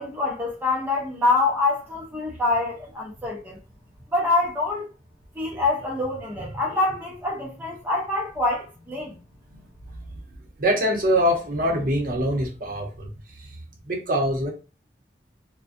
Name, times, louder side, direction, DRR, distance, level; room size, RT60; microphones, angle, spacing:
voice 1, 0.0-3.6 4.1-4.9 5.4-9.1, left 2 dB, 10° right, 0.4 m, -25 dB
voice 2, 10.6-13.1 13.4-13.6 13.9-14.5, equal, 50° right, 0.7 m, -24 dB
2.4 x 2.1 x 2.5 m
head